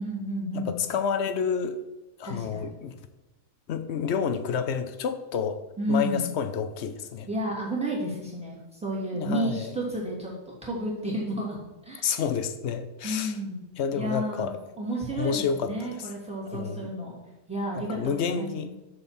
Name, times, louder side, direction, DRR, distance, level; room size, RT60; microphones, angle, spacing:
voice 1, 0.0-0.7 2.2-2.7 5.8-6.3 7.3-10.3 10.6-11.6 11.9-12.2 13.0-13.6 13.9-14.5 14.8-17.1 17.5-18.7, right 1 dB, 5° right, -5 dB, 2.7 m, -31 dB
voice 2, 0.6-1.8 2.2-2.9 3.7-5.6 5.9-7.3 9.1-9.7 12.0-13.4 13.8-14.6 15.1-16.1 16.5-16.9 17.7-18.7, left 6 dB, 60° left, 10 dB, 0.8 m, -29 dB
7.2 x 6.7 x 4.4 m, 1.0 s
omnidirectional pair, 1.6 m